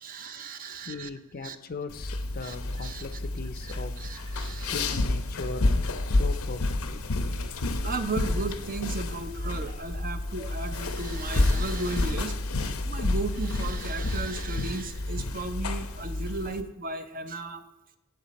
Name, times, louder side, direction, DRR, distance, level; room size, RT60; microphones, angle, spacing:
voice 1, 0.0-1.1 1.4-1.6 2.4-3.2 3.7-4.9 7.8-17.6, right 3 dB, 40° right, 9 dB, 0.6 m, -35 dB
voice 2, 0.8-4.1 4.7-5.7 6.1-7.0, left 3 dB, 45° left, 11 dB, 0.5 m, -39 dB
sound 1, 1.9-16.6, left 2 dB, 90° left, 0.8 m, -29 dB
10.5 x 7.5 x 4.1 m, 0.98 s
head